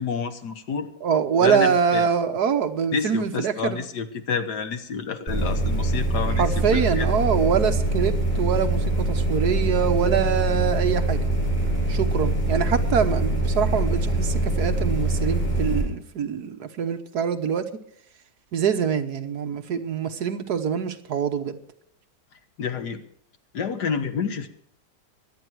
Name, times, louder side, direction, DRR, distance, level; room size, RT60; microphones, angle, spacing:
voice 1, 0.0-0.9 1.4-2.1 2.9-7.1 22.6-23.0 23.5-24.5, left 6 dB, 70° left, 9 dB, 1.9 m, -29 dB
voice 2, 1.0-3.8 6.4-11.2 11.9-17.7 18.5-21.6, right 7 dB, 65° right, 8 dB, 1.6 m, -24 dB
sound 1, 5.3-15.8, right 1 dB, 5° right, 6.6 m, -24 dB
23.0 x 9.2 x 4.7 m, 0.70 s
omnidirectional pair, 1.9 m